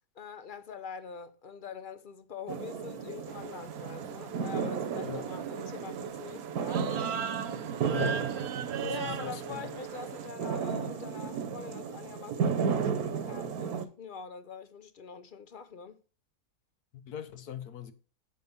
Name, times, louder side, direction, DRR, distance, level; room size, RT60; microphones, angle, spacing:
voice 1, 0.1-7.1 8.9-16.0, left 6 dB, 60° left, 0.5 m, -44 dB
sound 1, 2.5-13.9, right 6 dB, 75° right, 1.4 m, -34 dB
sound 2, 3.3-10.3, right 7 dB, 60° right, 0.7 m, -40 dB
voice 2, 7.9-8.2 8.8-9.7 16.9-17.9, left 9 dB, 80° left, 1.4 m, -40 dB
8.0 x 6.4 x 5.4 m
omnidirectional pair, 1.6 m